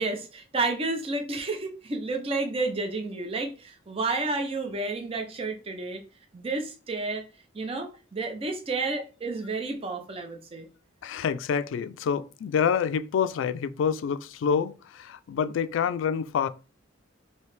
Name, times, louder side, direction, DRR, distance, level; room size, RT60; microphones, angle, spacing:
voice 1, 0.0-6.0 6.3-7.2 7.5-10.7, right 3 dB, 30° right, 0.5 m, -31 dB
voice 2, 11.0-16.5, left 7 dB, 85° left, 0.3 m, -27 dB
3.1 x 2.8 x 3.2 m
head